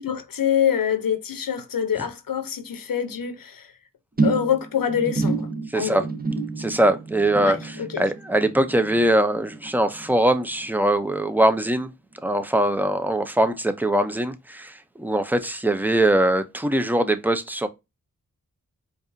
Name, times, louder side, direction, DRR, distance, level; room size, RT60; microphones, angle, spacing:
voice 1, 0.0-3.7 4.2-6.1 7.4-8.0, left 8 dB, 80° left, 0.8 m, -25 dB
sound 1, 4.2-10.8 11.0-11.5 11.8-11.9, right 3 dB, 25° right, 1.0 m, -30 dB
voice 2, 5.7-6.1 6.6-11.9 12.2-17.7, right 1 dB, 5° right, 0.6 m, -22 dB
4.7 x 2.6 x 2.6 m
cardioid pair, 65°, 33 cm